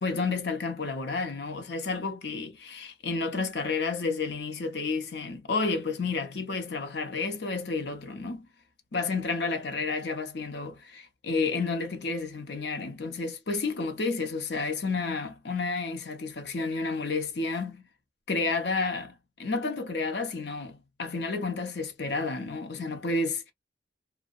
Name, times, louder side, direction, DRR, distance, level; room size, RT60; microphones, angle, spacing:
voice 1, 0.0-8.5 8.9-17.9 18.3-23.5, left 4 dB, 60° left, 0.7 m, -31 dB
2.6 x 2.1 x 2.3 m
head